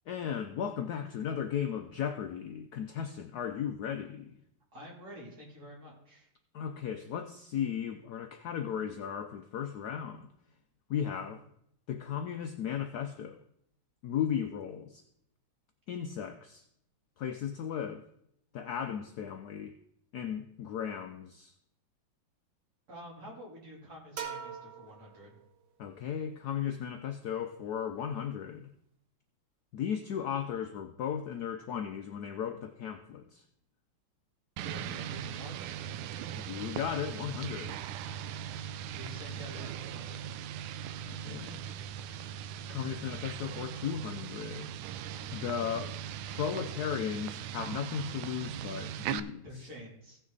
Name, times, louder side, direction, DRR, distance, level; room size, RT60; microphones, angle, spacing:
voice 1, 0.1-4.4 6.5-10.3 10.9-11.4 11.9-13.4 14.0-15.0 15.9-16.6 17.2-18.0 18.5-19.7 20.1-21.5 25.8-28.7 29.7-33.4 36.3-37.9 41.1-41.6 42.7-44.7 45.3-46.0 46.3-49.5, left 8 dB, 70° left, 7 dB, 1.0 m, -36 dB
voice 2, 4.7-6.3 22.9-25.4 34.6-35.9 38.9-40.2 49.4-50.2, equal, 45° right, -3 dB, 3.6 m, -48 dB
sound 1, 24.2-25.9, right 7 dB, 60° right, 1.7 m, -43 dB
sound 2, 34.6-49.2, right 10 dB, 85° right, 1.4 m, -39 dB
16.0 x 6.3 x 4.0 m, 0.74 s
omnidirectional pair, 2.2 m